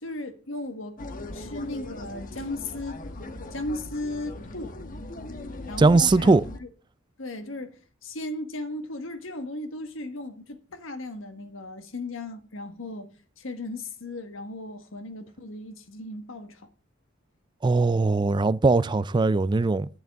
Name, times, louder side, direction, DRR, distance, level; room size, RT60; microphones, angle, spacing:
voice 1, 0.0-1.0 1.3-3.1 3.5-4.7 5.7-6.7 7.2-13.1 13.4-16.6, left 2 dB, 75° left, 1.5 m, -36 dB
sound 1, 1.0-6.6, left 2 dB, 45° left, 1.1 m, -39 dB
voice 2, 5.8-6.4 17.6-19.9, right 3 dB, 25° right, 0.3 m, -20 dB
10.5 x 9.3 x 3.6 m
head